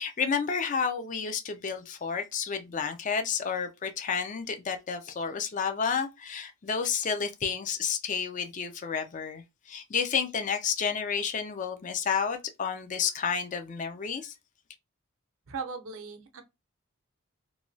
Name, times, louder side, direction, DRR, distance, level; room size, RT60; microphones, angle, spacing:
voice 1, 0.0-14.3, left 6 dB, 35° left, 0.4 m, -31 dB
voice 2, 15.5-16.4, right 5 dB, 70° right, 0.6 m, -38 dB
3.0 x 2.2 x 2.6 m
head